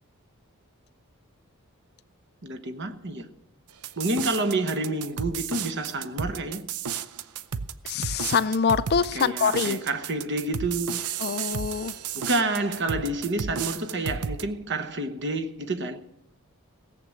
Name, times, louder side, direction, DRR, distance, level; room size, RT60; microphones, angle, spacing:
voice 1, 2.4-3.3 4.0-6.7 9.1-11.0 12.1-16.0, right 2 dB, 55° right, 1.1 m, -29 dB
sound 1, 3.8-14.4, right 7 dB, 90° right, 0.6 m, -33 dB
voice 2, 7.9-9.8 11.2-11.9, left 6 dB, 45° left, 0.4 m, -25 dB
17.0 x 7.6 x 7.8 m
head